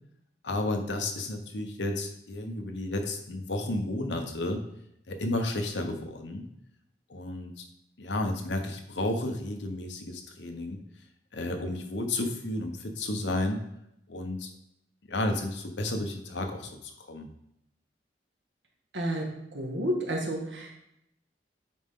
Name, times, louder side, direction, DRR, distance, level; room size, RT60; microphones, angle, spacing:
voice 1, 0.4-4.6 5.1-6.5 7.1-7.6 8.0-10.8 11.3-13.6 14.1-14.5 15.1-17.3, left 2 dB, 85° left, 5 dB, 1.0 m, -32 dB
voice 2, 18.9-19.2 19.5-20.7, right 1 dB, 85° right, -1 dB, 1.8 m, -30 dB
9.4 x 4.3 x 3.7 m, 0.79 s
head